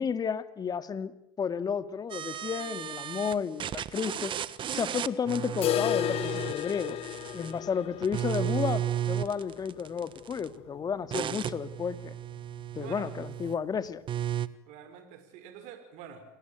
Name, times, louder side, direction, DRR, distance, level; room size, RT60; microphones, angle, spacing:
voice 1, 0.0-4.3 4.7-7.0 7.3-12.1 12.8-14.0, left 6 dB, 30° left, 12 dB, 2.1 m, -32 dB
sound 1, 2.1-3.3 3.6-7.6 8.0-10.5 11.1-13.5 14.1-14.5, right 11 dB, 40° right, 1.4 m, -34 dB
sound 2, 5.6-11.4 11.7-11.8 12.2-12.3 12.8-12.9 13.7-13.8, left 13 dB, 45° left, 1.0 m, -34 dB
voice 2, 12.7-13.1 14.7-16.2, right 9 dB, 60° right, 8 dB, 5.7 m, -46 dB
29.5 x 20.0 x 9.2 m, 0.79 s
hypercardioid pair, 95°, 13 cm